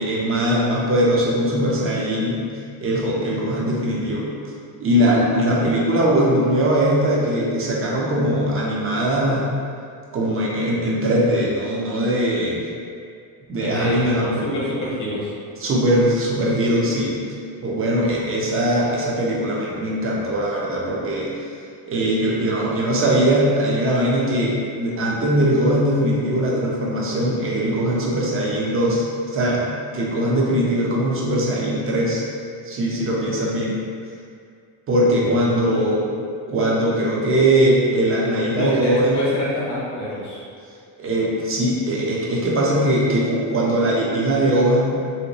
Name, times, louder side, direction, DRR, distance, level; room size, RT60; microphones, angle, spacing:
voice 1, 0.0-2.4 2.8-4.3 4.8-9.4 10.1-12.6 13.5-14.3 15.6-17.2 17.6-21.3 21.9-29.0 29.3-29.6 29.9-32.3 32.6-33.8 34.9-36.0 36.5-39.2 41.0-44.9, right 1 dB, 30° right, -4 dB, 0.6 m, -20 dB
voice 2, 13.6-15.3 35.2-35.9 38.5-40.4, left 1 dB, 40° left, -6 dB, 1.0 m, -26 dB
3.0 x 2.9 x 2.9 m, 2.3 s
cardioid pair, 125°, 45 cm